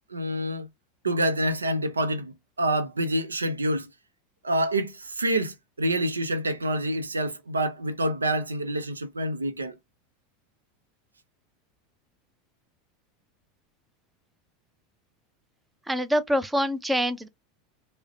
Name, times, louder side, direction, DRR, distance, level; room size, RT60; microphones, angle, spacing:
voice 1, 0.1-0.7 1.0-3.9 4.4-9.7, right 1 dB, 85° right, 0.5 m, -27 dB
voice 2, 15.9-17.3, equal, 10° right, 0.5 m, -25 dB
4.7 x 2.1 x 2.7 m
figure-of-eight pair, 80°, 0 cm